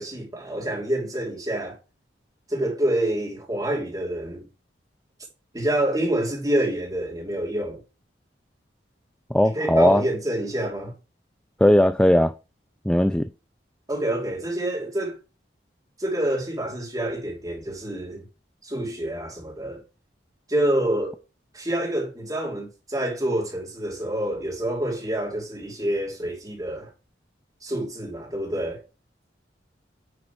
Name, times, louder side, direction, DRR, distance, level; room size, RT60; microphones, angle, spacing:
voice 1, 0.0-1.8 2.5-4.5 5.5-7.8 9.4-10.9 13.9-15.1 16.0-18.2 18.6-19.8 20.5-21.2 21.5-26.9 27.6-28.8, right 1 dB, 20° right, 2.8 m, -27 dB
voice 2, 9.3-10.0 11.6-12.3 12.9-13.2, left 1 dB, 5° left, 0.3 m, -18 dB
9.7 x 3.9 x 4.5 m
head